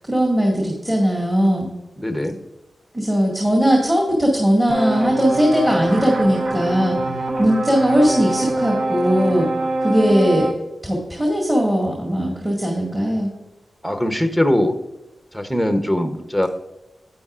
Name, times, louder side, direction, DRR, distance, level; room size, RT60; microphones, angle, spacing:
voice 1, 0.1-1.7 2.9-7.0 7.4-9.5 9.8-10.5 10.8-13.3, equal, 15° right, -2 dB, 1.9 m, -19 dB
voice 2, 2.0-2.4 13.8-14.8 15.3-16.5, left 1 dB, ahead, 6 dB, 0.8 m, -21 dB
sound 1, 4.7-10.5, right 2 dB, 65° right, 1.2 m, -24 dB
11.0 x 8.9 x 2.4 m, 0.97 s
wide cardioid pair, 125°, 0 cm